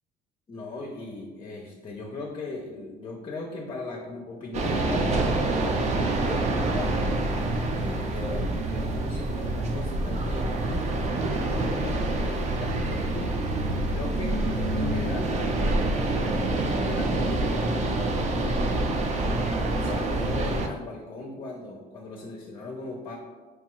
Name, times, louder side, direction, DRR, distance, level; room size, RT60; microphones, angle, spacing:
voice 1, 0.5-5.6 6.0-10.9 11.2-13.5 13.9-16.4 16.7-19.0 19.4-23.2, left 2 dB, 30° left, 1 dB, 0.4 m, -38 dB
sound 1, 4.5-20.7, right 2 dB, 45° right, 0.4 m, -26 dB
4.7 x 2.3 x 2.9 m, 1.4 s
cardioid pair, 110°, 17 cm